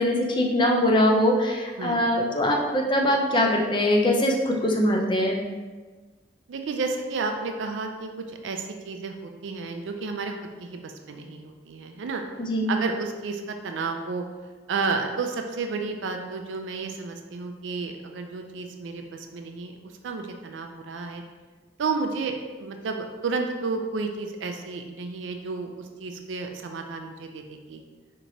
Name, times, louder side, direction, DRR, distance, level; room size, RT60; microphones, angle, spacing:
voice 1, 0.0-5.4 12.5-12.7, left 1 dB, 25° left, 0 dB, 0.5 m, -22 dB
voice 2, 6.5-10.3 10.6-12.2 12.7-14.2 14.7-21.2 21.8-27.8, right 4 dB, 85° right, 5 dB, 0.4 m, -32 dB
4.5 x 2.9 x 2.6 m, 1.3 s
head